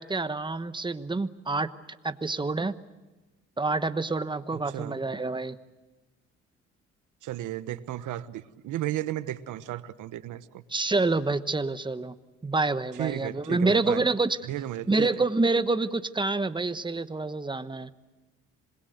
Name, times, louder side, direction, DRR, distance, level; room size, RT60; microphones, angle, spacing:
voice 1, 0.0-1.7 2.0-2.8 3.6-5.6 10.7-12.1 12.4-14.4 14.9-17.9, right 3 dB, 15° right, 12 dB, 1.1 m, -27 dB
voice 2, 4.5-5.0 7.2-10.6 13.0-14.0 14.4-15.1, right 13 dB, 85° right, 13 dB, 1.1 m, -34 dB
26.5 x 21.5 x 8.0 m, 1.2 s
cardioid pair, 90°, 30 cm